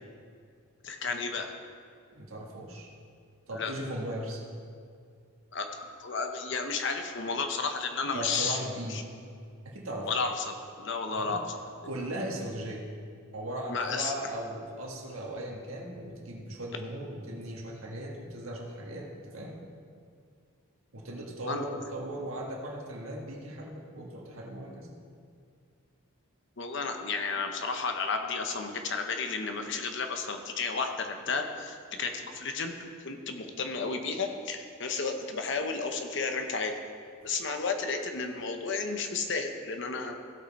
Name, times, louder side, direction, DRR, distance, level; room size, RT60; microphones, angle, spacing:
voice 1, 0.8-1.5 3.5-3.7 5.5-8.6 8.9-9.0 10.0-11.6 13.7-14.1 21.5-21.6 26.6-36.8 37.2-40.1, left 4 dB, 60° left, 5 dB, 0.9 m, -32 dB
voice 2, 2.1-2.9 3.5-4.4 8.1-9.0 9.7-10.1 11.1-11.4 11.9-12.8 13.3-19.6 20.9-24.9 37.2-37.3, right 1 dB, 85° right, -1 dB, 1.6 m, -38 dB
16.0 x 5.5 x 4.2 m, 2.3 s
head